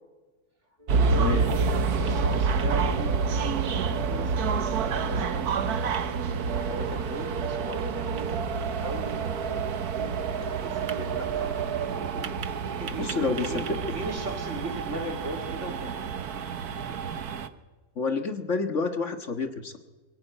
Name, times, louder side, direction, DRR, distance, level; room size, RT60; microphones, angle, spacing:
sound 1, 0.8-11.8, right 3 dB, 20° right, 2.0 m, -43 dB
voice 1, 0.9-5.5 6.5-7.9 8.8-9.2 10.6-11.7 12.7-16.1 16.8-17.0, right 1 dB, 50° right, 3 dB, 3.6 m, -37 dB
sound 2, 0.9-17.5, right 5 dB, 80° right, 1.6 m, -28 dB
voice 2, 13.0-13.6 18.0-19.8, left 4 dB, 55° left, 7 dB, 1.8 m, -29 dB
23.0 x 16.5 x 9.0 m, 1.2 s
omnidirectional pair, 1.6 m